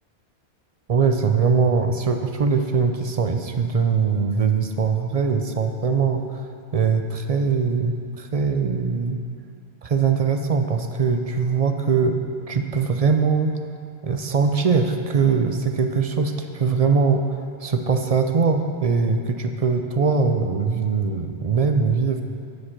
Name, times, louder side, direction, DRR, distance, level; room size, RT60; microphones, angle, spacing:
voice 1, 0.9-9.2 9.8-12.2 12.5-13.6 14.0-22.2, right 5 dB, 45° right, 6 dB, 0.5 m, -21 dB
9.9 x 5.4 x 5.9 m, 2.4 s
omnidirectional pair, 1.1 m